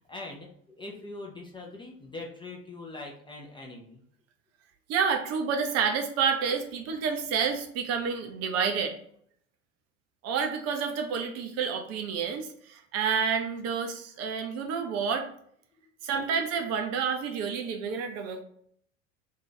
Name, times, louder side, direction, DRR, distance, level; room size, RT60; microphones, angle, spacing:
voice 1, 0.0-4.0, left 2 dB, 10° left, -1 dB, 0.5 m, -42 dB
voice 2, 4.9-9.0 10.2-15.3 16.0-18.4, right 6 dB, 40° right, 4 dB, 0.6 m, -29 dB
2.6 x 2.4 x 3.8 m, 0.64 s
figure-of-eight pair, 75°, 39 cm